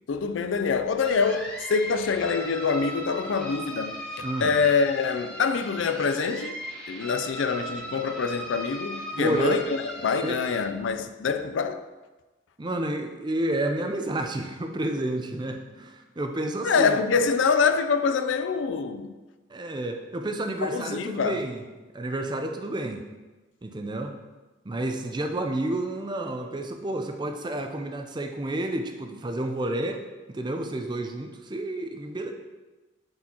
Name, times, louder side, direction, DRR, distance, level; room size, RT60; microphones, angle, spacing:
voice 1, 0.1-3.9 4.4-6.6 6.9-11.8 16.6-19.1 20.6-21.4, left 5 dB, 80° left, 0.4 m, -25 dB
sound 1, 1.0-10.6, right 1 dB, 5° left, 1.1 m, -38 dB
voice 2, 4.2-4.5 9.2-9.7 10.2-10.4 12.6-17.0 19.5-21.6 21.9-23.0 23.6-24.1 24.6-30.0 30.3-32.3, right 1 dB, 25° right, 0.5 m, -30 dB
9.6 x 4.4 x 2.9 m
head